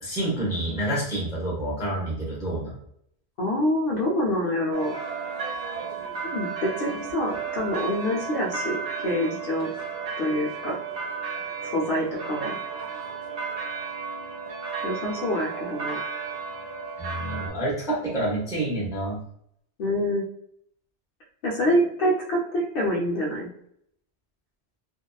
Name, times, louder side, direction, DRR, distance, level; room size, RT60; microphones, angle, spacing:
voice 1, 0.0-2.7 17.0-19.2, right 1 dB, 5° right, -6 dB, 0.6 m, -28 dB
voice 2, 3.4-5.0 6.3-8.8 9.0-9.7 10.2-10.8 11.6-12.6 14.8-16.0 19.8-20.2 21.4-23.5, equal, 60° left, -3 dB, 0.7 m, -26 dB
sound 1, 4.7-17.5, right 5 dB, 75° right, 0.9 m, -33 dB
2.7 x 2.2 x 2.2 m, 0.70 s
omnidirectional pair, 1.2 m